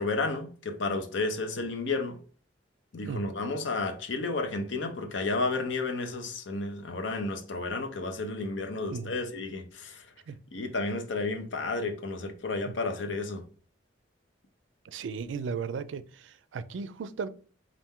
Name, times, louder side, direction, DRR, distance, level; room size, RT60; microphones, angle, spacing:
voice 1, 0.0-2.2 2.9-10.1 10.5-13.4, left 3 dB, 80° left, 0.7 m, -32 dB
voice 2, 14.9-16.0 16.5-17.3, right 5 dB, 85° right, 0.4 m, -35 dB
4.2 x 2.5 x 3.6 m
head